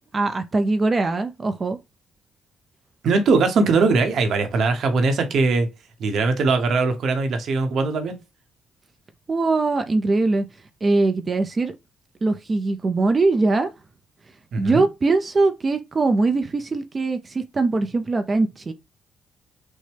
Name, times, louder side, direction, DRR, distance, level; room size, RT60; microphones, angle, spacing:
voice 1, 0.1-1.8 9.3-10.4 10.8-11.7 12.2-13.7 14.6-18.7, right 3 dB, 35° right, 0.5 m, -21 dB
voice 2, 3.0-5.7 6.0-8.1 14.5-14.8, right 4 dB, 65° right, 1.0 m, -20 dB
6.3 x 2.2 x 3.4 m
cardioid pair, 90°, 0 cm